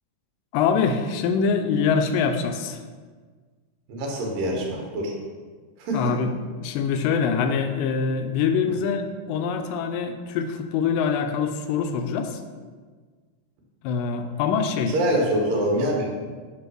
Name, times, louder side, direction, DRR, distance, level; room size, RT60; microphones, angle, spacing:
voice 1, 0.5-2.8 5.9-12.4 13.8-14.9, left 6 dB, 90° left, 7 dB, 2.3 m, -24 dB
voice 2, 3.9-5.1 5.8-6.1 8.7-8.8 14.9-16.2, right 1 dB, 85° right, 0 dB, 3.0 m, -25 dB
8.8 x 3.1 x 6.1 m, 1.5 s
omnidirectional pair, 3.8 m